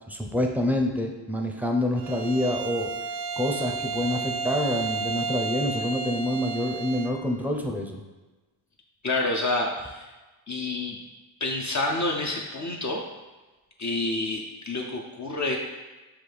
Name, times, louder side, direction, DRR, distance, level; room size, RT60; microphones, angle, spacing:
voice 1, 0.1-2.9 3.4-8.0, left 1 dB, 5° right, 2 dB, 0.6 m, -27 dB
Bowed string instrument, 2.0-7.2, right 4 dB, 60° right, 0.6 m, -32 dB
voice 2, 9.0-10.1 10.5-11.0 11.4-13.0 13.8-15.6, left 2 dB, 40° left, 0 dB, 0.5 m, -28 dB
5.8 x 2.3 x 3.3 m, 1.2 s
supercardioid pair, 45°, 47 cm